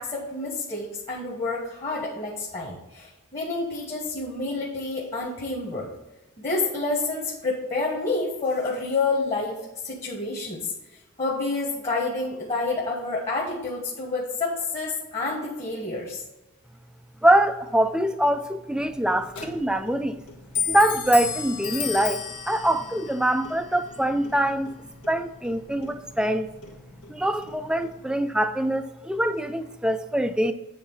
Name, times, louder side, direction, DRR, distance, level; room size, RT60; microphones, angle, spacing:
voice 1, 0.0-5.9 6.4-9.6 9.8-10.7 11.2-16.2, left 3 dB, 30° left, 1.4 m, -28 dB
voice 2, 17.2-20.2 20.7-24.7 25.1-26.5 27.1-30.5, right 1 dB, 5° right, 0.4 m, -24 dB
Clock, 18.8-28.0, left 7 dB, 90° left, 1.4 m, -35 dB
8.5 x 3.9 x 5.5 m
head